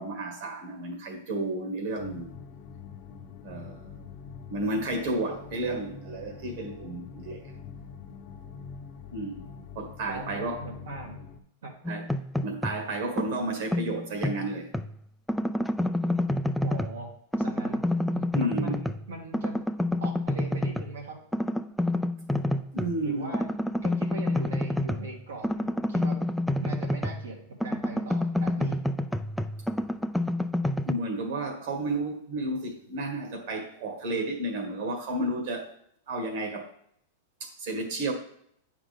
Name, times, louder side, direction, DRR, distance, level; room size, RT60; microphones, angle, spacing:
voice 1, 0.0-2.3 3.4-4.0 4.5-7.5 9.1-9.5 9.8-10.6 11.9-12.0 12.4-14.7 18.3-18.7 22.7-23.3 30.9-35.7 36.1-36.7 37.4-38.1, right 2 dB, 60° right, 3 dB, 1.7 m, -32 dB
sound 1, 1.9-11.4, left 6 dB, 45° left, 0.9 m, -44 dB
voice 2, 10.1-11.2 11.6-11.7 16.6-17.1 17.4-17.8 18.1-19.6 20.0-21.2 23.0-23.5 23.8-26.2 26.6-28.8, right 2 dB, 90° right, 0 dB, 2.0 m, -40 dB
sound 2, 11.8-12.8 13.2-14.9 15.3-17.0 17.3-19.1 19.3-20.9 21.3-22.9 23.3-27.3 27.6-30.9, left 1 dB, ahead, 0.3 m, -28 dB
8.7 x 5.0 x 3.6 m, 0.68 s
supercardioid pair, 140°, 0 cm